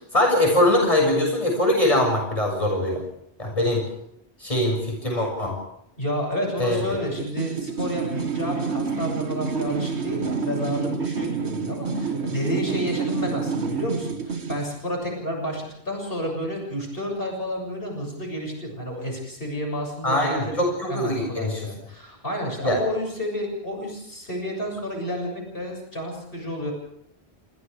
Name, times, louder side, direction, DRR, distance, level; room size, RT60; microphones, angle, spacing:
voice 1, 0.1-3.0 3.4-3.8 4.4-5.5 6.6-6.8 20.0-21.6 22.6-22.8, left 1 dB, 30° left, 0 dB, 7.0 m, -22 dB
voice 2, 6.0-20.6 20.9-26.7, equal, 55° left, 0 dB, 7.7 m, -30 dB
sound 1, 7.2-14.7, right 5 dB, 80° right, 1.9 m, -28 dB
28.5 x 27.5 x 3.6 m, 0.75 s
omnidirectional pair, 1.1 m